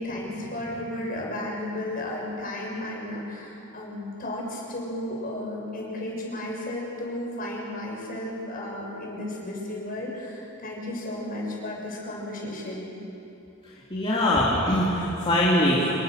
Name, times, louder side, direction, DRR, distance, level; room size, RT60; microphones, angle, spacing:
voice 1, 0.0-12.9, left 1 dB, 45° left, -2 dB, 6.9 m, -33 dB
voice 2, 13.9-15.9, left 1 dB, 25° left, -6 dB, 2.9 m, -22 dB
27.0 x 23.0 x 6.7 m, 2.8 s
head